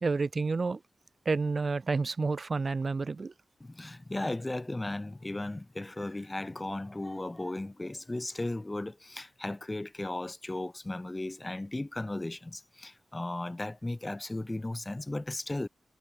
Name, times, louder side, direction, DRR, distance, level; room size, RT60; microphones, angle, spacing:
voice 1, 0.0-0.8 1.3-3.3, right 4 dB, 35° right, 0.5 m, -29 dB
voice 2, 3.6-15.7, left 2 dB, 15° left, 0.8 m, -36 dB
wide cardioid pair, 140°, 0 cm